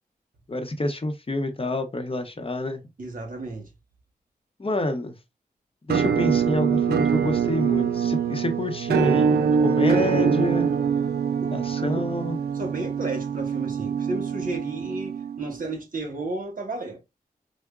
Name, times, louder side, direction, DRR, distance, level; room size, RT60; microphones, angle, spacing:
voice 1, 0.5-2.8 4.6-5.2 5.9-10.7 11.5-12.4, left 1 dB, 35° left, 0.8 m, -28 dB
voice 2, 3.0-3.7 11.4-12.0 12.5-17.0, right 2 dB, 60° right, 1.2 m, -33 dB
Musical instrument, 5.9-15.7, right 7 dB, 85° right, 0.4 m, -24 dB
4.5 x 2.1 x 2.4 m
cardioid pair, 45°, 16 cm